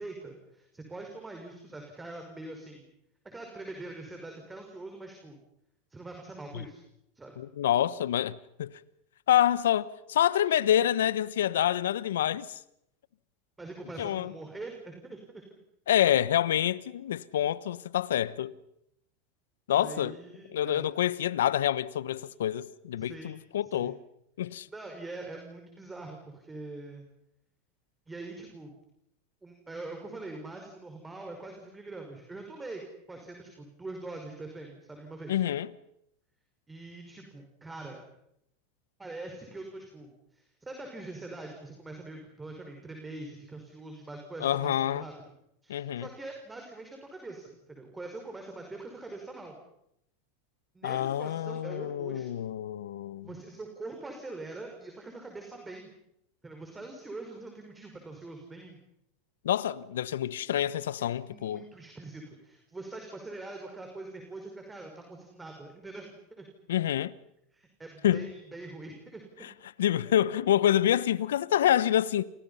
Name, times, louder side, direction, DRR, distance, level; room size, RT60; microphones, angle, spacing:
voice 1, 0.0-2.9 3.2-5.4 5.9-6.8 7.2-7.4 13.6-15.4 19.7-20.8 23.0-23.4 23.6-23.9 24.7-27.1 28.1-28.7 29.4-32.8 33.1-35.4 36.7-38.0 39.0-45.1 45.6-49.5 50.7-52.4 53.2-55.9 56.4-58.8 61.0-66.5 67.5-69.5, right 2 dB, 15° right, 5.6 m, -43 dB
voice 2, 7.4-8.7 9.3-12.6 14.0-14.3 15.9-18.5 19.7-20.2 20.5-24.0 24.4-24.7 35.3-35.7 44.4-45.0 45.7-46.1 50.8-53.3 59.4-61.6 66.7-67.1 68.0-68.3 69.4-69.5 69.8-72.2, left 11 dB, 80° left, 1.0 m, -27 dB
29.5 x 28.0 x 5.7 m
hypercardioid pair, 95°, 0 cm